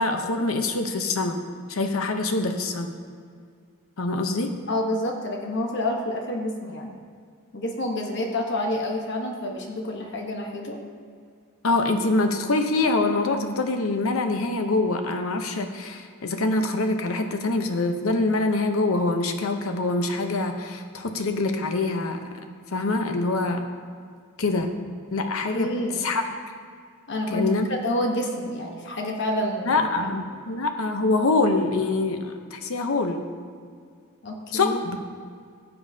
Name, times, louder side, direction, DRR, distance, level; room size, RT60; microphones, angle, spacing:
voice 1, 0.0-1.4 1.7-2.9 4.0-4.6 11.6-22.2 22.7-23.7 24.4-24.8 25.1-26.3 27.3-27.7 29.6-33.3 34.5-35.0, left 2 dB, 75° left, 6 dB, 0.8 m, -25 dB
voice 2, 4.7-6.9 7.5-10.8 25.5-26.1 27.1-27.5 27.8-30.1 34.2-34.8, left 1 dB, 55° left, 1 dB, 1.0 m, -28 dB
15.0 x 7.1 x 2.7 m, 2.1 s
head